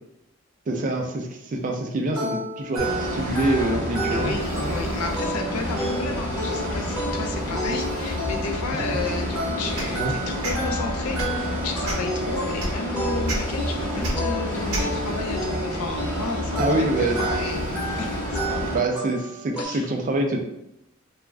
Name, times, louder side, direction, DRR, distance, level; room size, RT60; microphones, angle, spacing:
voice 1, 0.7-4.3 4.6-4.7 9.9-10.1 16.6-17.2 18.7-20.4, right 2 dB, 35° right, 1 dB, 0.3 m, -25 dB
sound 1, 2.1-19.7, right 1 dB, 5° right, 0.8 m, -32 dB
sound 2, 2.8-18.8, left 1 dB, 20° left, 1.0 m, -29 dB
voice 2, 4.1-18.8 19.6-19.9, left 4 dB, 85° left, 3 dB, 0.4 m, -33 dB
sound 3, 9.7-9.9 10.4-10.6 11.1-11.4 11.8-12.1 12.6-12.7 13.3-13.4 14.0-14.1 14.7-14.9, right 2 dB, 75° right, 0.7 m, -28 dB
2.4 x 2.1 x 3.3 m, 0.84 s
head